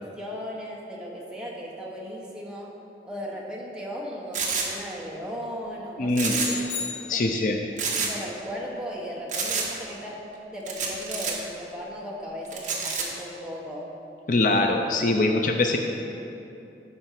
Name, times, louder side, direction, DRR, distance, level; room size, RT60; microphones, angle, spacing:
voice 1, 0.1-2.7 3.0-6.6 7.1-7.2 8.0-10.2 10.5-13.9, equal, 5° right, -4 dB, 1.2 m, -36 dB
sound 1, 4.3-4.7 6.1-6.7 6.9-7.0 7.8-8.1 9.3-9.7 10.7-11.3 12.5-13.0, right 5 dB, 45° right, 1.2 m, -28 dB
voice 2, 6.0-6.4 7.1-7.6 14.3-15.8, left 2 dB, 45° left, 3 dB, 0.5 m, -23 dB
sound 2, 6.4-7.7, left 6 dB, 90° left, 2.1 m, -35 dB
12.5 x 4.3 x 5.8 m, 2.8 s
head